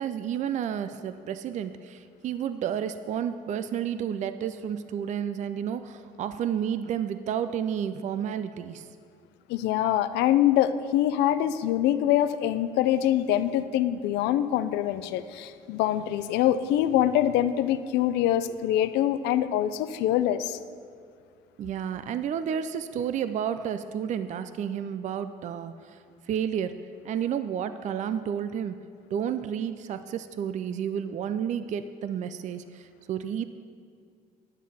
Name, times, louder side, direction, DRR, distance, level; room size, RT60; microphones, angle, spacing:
voice 1, 0.0-8.9 21.6-26.0 26.3-26.7 27.0-28.8 29.1-33.5, right 8 dB, 45° right, 11 dB, 0.4 m, -31 dB
voice 2, 9.5-20.6, left 12 dB, 90° left, 12 dB, 0.5 m, -24 dB
10.5 x 7.3 x 5.5 m, 2.2 s
cardioid pair, 110°, 17 cm